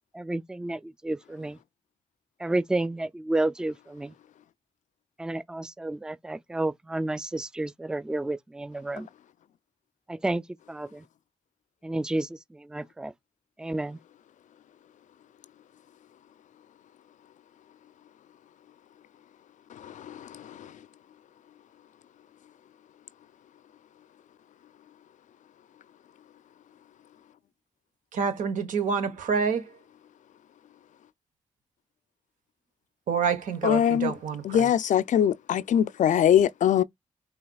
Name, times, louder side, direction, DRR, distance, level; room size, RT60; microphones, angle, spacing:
voice 1, 0.1-1.6 2.4-4.1 5.2-9.1 10.1-11.0 11.8-13.1 13.6-14.0, right 2 dB, 5° right, 0.3 m, -31 dB
voice 2, 28.1-29.7 33.1-34.7, right 6 dB, 85° right, 1.1 m, -27 dB
voice 3, 33.6-34.1 34.5-36.8, left 9 dB, 75° left, 0.4 m, -21 dB
5.7 x 3.3 x 2.3 m
supercardioid pair, 40°, 13 cm